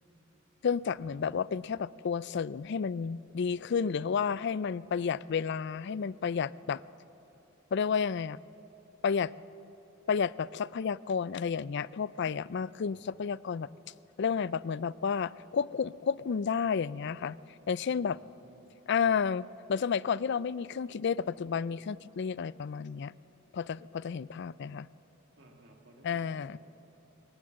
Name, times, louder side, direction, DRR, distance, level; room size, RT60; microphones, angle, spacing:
voice 1, 0.6-6.8 7.7-8.4 9.0-9.3 10.1-13.7 14.2-17.4 17.7-18.2 18.9-23.1 23.5-24.9 26.0-26.6, left 6 dB, 55° left, 19 dB, 0.4 m, -31 dB
voice 2, 12.8-13.2 18.1-18.7 25.4-26.6, right 1 dB, 60° right, 1 dB, 2.0 m, -58 dB
22.0 x 18.5 x 7.6 m, 3.0 s
head